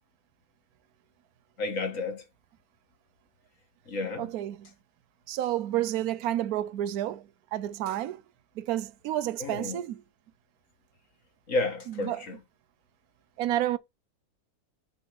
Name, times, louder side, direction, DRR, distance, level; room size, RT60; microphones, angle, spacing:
voice 1, 1.6-2.2 3.9-4.3 9.4-9.8 11.5-12.4, left 3 dB, 55° left, 2.0 m, -31 dB
voice 2, 4.2-4.7 5.3-8.2 8.6-10.0 11.9-12.2 13.4-13.8, right 12 dB, 70° right, 1.1 m, -30 dB
7.1 x 5.9 x 4.4 m
omnidirectional pair, 1.7 m